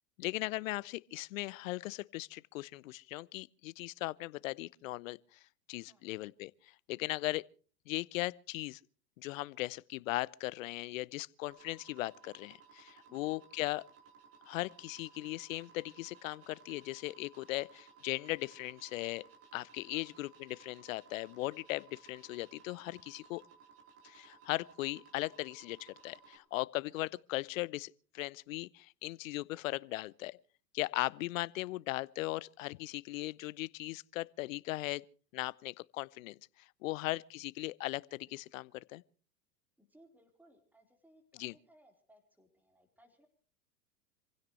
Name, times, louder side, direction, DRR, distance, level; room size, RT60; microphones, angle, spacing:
voice 1, 0.2-5.4 5.7-6.5 6.9-7.4 7.9-8.8 9.2-13.8 14.5-19.2 19.5-23.4 24.0-30.4 30.7-35.0 35.3-36.4 36.8-39.0 41.4-41.5, left 19 dB, 55° left, 0.7 m, -38 dB
sound 1, 11.5-26.4, right 6 dB, 30° right, 4.9 m, -60 dB
voice 2, 13.1-13.4 19.9-20.1 36.9-37.1 39.8-43.3, right 1 dB, 5° right, 4.1 m, -65 dB
27.0 x 16.5 x 3.2 m
hypercardioid pair, 105°, 49 cm